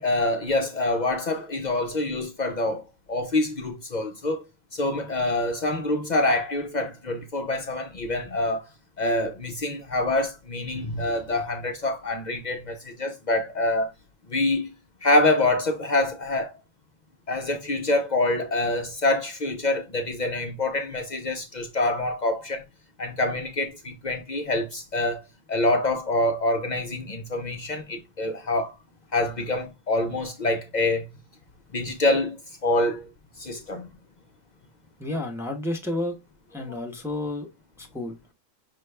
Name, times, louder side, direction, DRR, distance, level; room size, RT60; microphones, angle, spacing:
voice 1, 0.0-2.8 3.1-4.4 4.7-8.7 9.0-13.9 14.3-14.7 15.0-16.5 17.3-22.6 23.0-28.7 29.1-31.0 31.7-33.0 33.4-33.9, left 2 dB, 55° left, 0.5 m, -26 dB
voice 2, 35.0-36.2 36.5-37.5 37.8-38.2, left 1 dB, 5° right, 0.6 m, -30 dB
5.8 x 2.2 x 3.3 m
omnidirectional pair, 1.4 m